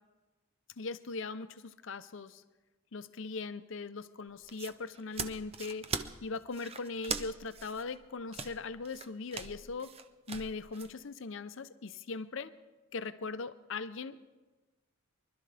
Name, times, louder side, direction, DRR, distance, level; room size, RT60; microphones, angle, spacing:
voice 1, 0.8-2.4 2.9-5.9 6.2-9.9 10.3-12.5 12.9-14.2, left 4 dB, 60° left, 12 dB, 0.6 m, -40 dB
sound 1, 4.3-10.9, right 5 dB, 25° right, 0.5 m, -41 dB
24.0 x 12.0 x 3.4 m, 1.2 s
head